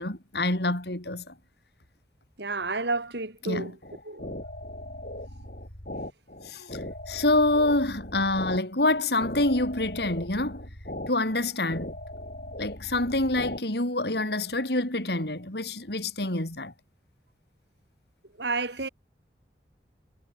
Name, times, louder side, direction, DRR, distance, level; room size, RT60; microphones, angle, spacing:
voice 1, 0.0-1.3 3.4-3.8 6.4-10.7 11.1-11.9 12.6-16.7, left 2 dB, 65° left, 3.8 m, -27 dB
voice 2, 2.4-3.7 4.1-4.3 18.4-18.9, right 3 dB, 75° right, 3.6 m, -30 dB
sound 1, 3.8-13.6, left 1 dB, 50° left, 6.6 m, -39 dB
head